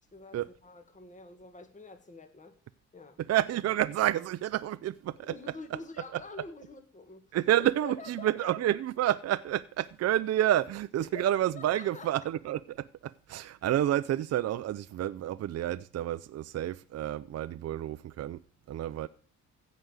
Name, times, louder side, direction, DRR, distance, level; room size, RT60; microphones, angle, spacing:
voice 1, 0.1-2.5 2.9-3.2 5.2-8.5 11.0-12.1 19.0-19.1, left 3 dB, 25° left, 1.8 m, -47 dB
voice 2, 3.3-5.2 7.3-18.4 18.7-19.1, right 12 dB, 55° right, 0.6 m, -29 dB
15.5 x 5.3 x 8.0 m
cardioid pair, 90°, 30 cm